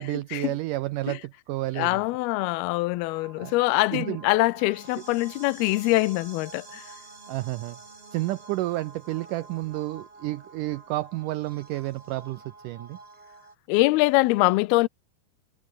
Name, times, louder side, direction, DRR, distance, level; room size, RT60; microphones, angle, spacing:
voice 1, 0.0-2.0 3.4-3.5 3.9-4.2 7.3-7.8 8.1-13.0, right 18 dB, 90° right, 1.8 m, -31 dB
voice 2, 1.8-6.8 13.7-14.9, left 21 dB, 85° left, 2.6 m, -23 dB
sound 1, 3.1-13.6, right 3 dB, 20° right, 1.9 m, -48 dB
omnidirectional pair, 4.5 m